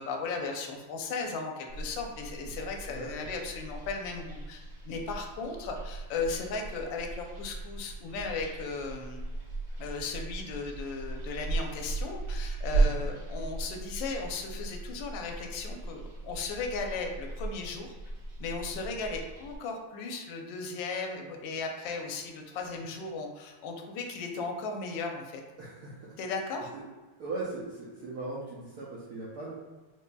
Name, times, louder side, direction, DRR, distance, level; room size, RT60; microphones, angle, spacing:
voice 1, 0.0-9.2 9.8-17.9 18.4-25.4 26.2-26.7, left 4 dB, 75° left, 2 dB, 1.1 m, -36 dB
sound 1, 1.7-19.6, right 3 dB, 25° right, 1.4 m, -36 dB
voice 2, 2.9-3.3 12.8-13.0 22.8-22.9 25.6-26.2 27.2-29.5, right 2 dB, 80° right, -6 dB, 0.8 m, -39 dB
4.6 x 2.6 x 2.2 m, 1.2 s
omnidirectional pair, 2.4 m